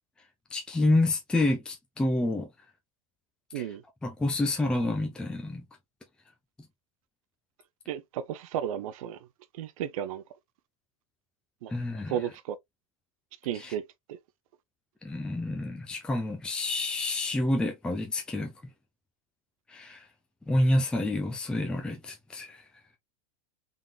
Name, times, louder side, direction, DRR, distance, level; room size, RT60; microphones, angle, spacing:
voice 1, 0.5-2.5 3.5-3.7 4.0-5.6 11.7-12.2 13.5-13.7 15.0-18.5 19.7-20.1 20.5-22.6, left 2 dB, 5° left, 0.6 m, -28 dB
voice 2, 7.9-9.2 9.6-10.2 11.6-11.7 12.1-12.6 13.4-13.8 14.1-14.2, right 10 dB, 70° right, 0.5 m, -33 dB
3.7 x 3.6 x 2.3 m
supercardioid pair, 140°, 18 cm